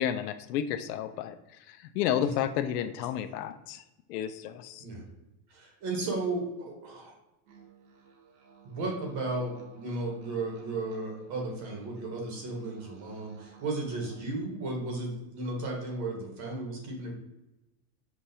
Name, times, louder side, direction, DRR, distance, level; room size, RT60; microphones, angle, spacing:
voice 1, 0.0-1.4 1.7-3.8 4.1-4.8, left 10 dB, 75° left, 10 dB, 0.5 m, -31 dB
voice 2, 5.5-7.1 8.6-17.1, right 2 dB, 35° right, 0 dB, 1.0 m, -34 dB
sound 1, 7.5-14.2, right 6 dB, 70° right, 1.1 m, -55 dB
5.9 x 2.4 x 2.6 m, 0.97 s
supercardioid pair, 160°, 48 cm